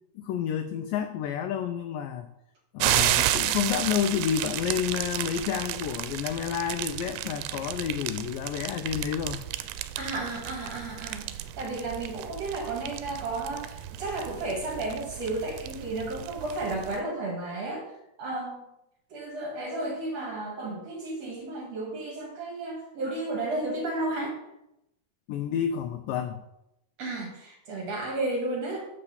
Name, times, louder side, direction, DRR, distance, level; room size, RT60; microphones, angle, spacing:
voice 1, 0.2-2.3 2.7-9.4 25.3-26.4, left 9 dB, 85° left, 7 dB, 1.9 m, -30 dB
sound 1, 2.8-17.0, right 13 dB, 85° right, 2.5 m, -32 dB
voice 2, 10.0-17.9 18.2-18.7 19.1-24.4 27.0-28.9, right 2 dB, 55° right, 0 dB, 2.3 m, -33 dB
6.5 x 6.1 x 7.0 m, 0.85 s
omnidirectional pair, 4.5 m